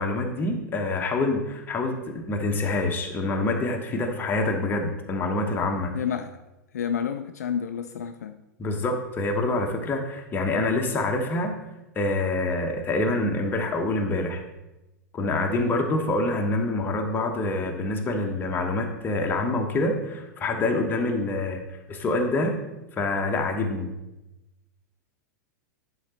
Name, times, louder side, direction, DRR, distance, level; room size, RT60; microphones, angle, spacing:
voice 1, 0.0-5.9 8.6-11.6 11.9-14.4 15.1-21.6 21.9-22.6 23.0-23.9, left 2 dB, 20° left, 3 dB, 1.1 m, -26 dB
voice 2, 5.9-6.4 6.7-8.3, left 8 dB, 65° left, 8 dB, 0.4 m, -29 dB
11.0 x 4.0 x 4.3 m, 0.98 s
figure-of-eight pair, 95°, 10 cm